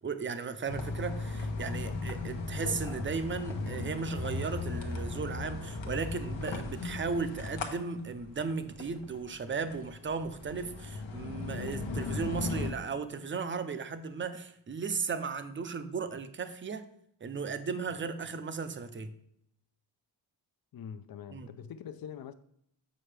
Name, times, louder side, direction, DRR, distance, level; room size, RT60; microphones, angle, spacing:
voice 1, 0.0-16.9 17.2-19.1 21.3-21.5, right 5 dB, 25° right, 0.5 m, -36 dB
sound 1, 0.7-12.7, left 3 dB, 85° left, 1.0 m, -37 dB
voice 2, 20.7-22.3, left 8 dB, 55° left, 0.5 m, -44 dB
7.5 x 5.4 x 3.3 m
wide cardioid pair, 135°, 44 cm